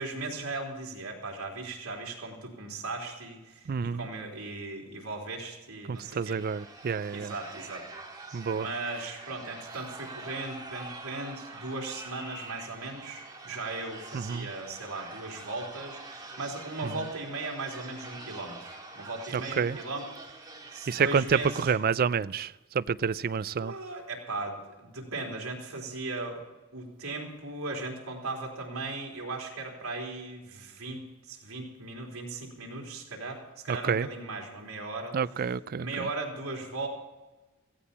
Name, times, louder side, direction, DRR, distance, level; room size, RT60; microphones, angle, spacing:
voice 1, 0.0-6.4 7.1-7.9 8.5-20.4 20.7-21.7 23.6-26.4 26.7-35.2 35.8-36.9, right 3 dB, 80° right, -1 dB, 3.6 m, -37 dB
voice 2, 3.7-4.1 5.9-7.3 8.3-8.7 14.1-14.5 16.8-16.9 19.3-19.8 20.9-23.7 33.7-34.1 35.1-36.1, right 6 dB, 45° right, 17 dB, 0.4 m, -29 dB
sound 1, 5.9-21.6, right 3 dB, 20° right, 2.1 m, -45 dB
17.0 x 15.5 x 4.2 m, 1.1 s
head